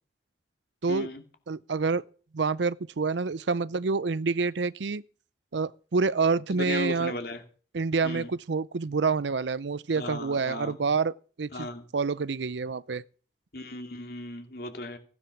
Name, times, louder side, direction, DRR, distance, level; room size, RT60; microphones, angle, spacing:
voice 1, 0.9-1.2 6.6-7.4 8.0-8.3 9.9-10.7 11.5-11.8 13.5-15.0, left 2 dB, 55° left, 2.6 m, -36 dB
voice 2, 1.5-2.0 2.3-5.0 5.5-7.1 7.7-11.7 11.9-13.0, right 4 dB, 80° right, 0.6 m, -27 dB
16.0 x 9.7 x 6.0 m
head